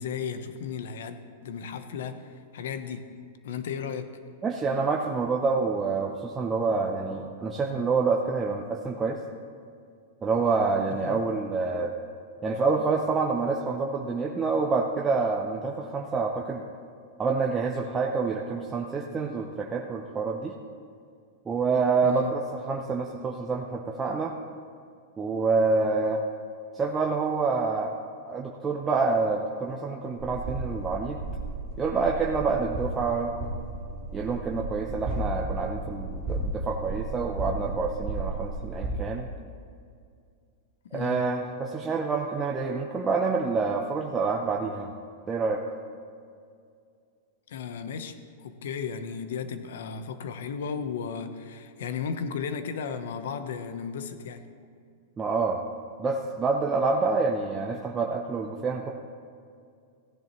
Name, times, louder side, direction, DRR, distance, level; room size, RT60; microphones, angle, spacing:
voice 1, 0.0-3.1 3.4-4.1 10.9-11.2 22.0-22.3 40.8-41.3 47.5-48.2 48.4-54.5, left 6 dB, 75° left, 10 dB, 0.9 m, -35 dB
voice 2, 4.4-9.2 10.2-11.9 12.4-16.6 17.2-20.5 21.5-24.3 25.2-26.2 26.7-28.0 28.3-31.2 31.8-33.3 34.1-39.3 40.9-44.9 45.3-45.6 55.2-55.6 56.0-58.9, right 4 dB, 15° right, 0 dB, 0.6 m, -27 dB
sound 1, 30.2-38.9, right 2 dB, 40° right, 1.4 m, -34 dB
16.0 x 10.5 x 3.0 m, 2.3 s
supercardioid pair, 160°, 0 cm